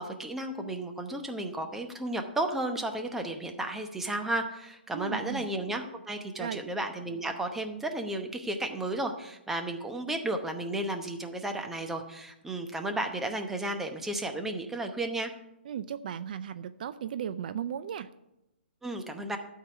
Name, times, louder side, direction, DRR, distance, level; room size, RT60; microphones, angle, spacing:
voice 1, 0.0-15.3 18.8-19.4, right 1 dB, 5° right, 5 dB, 0.9 m, -33 dB
voice 2, 4.9-5.4 6.4-6.6 15.7-18.1, right 9 dB, 50° right, 13 dB, 0.4 m, -36 dB
12.0 x 4.7 x 7.9 m, 0.89 s
hypercardioid pair, 145°, 6 cm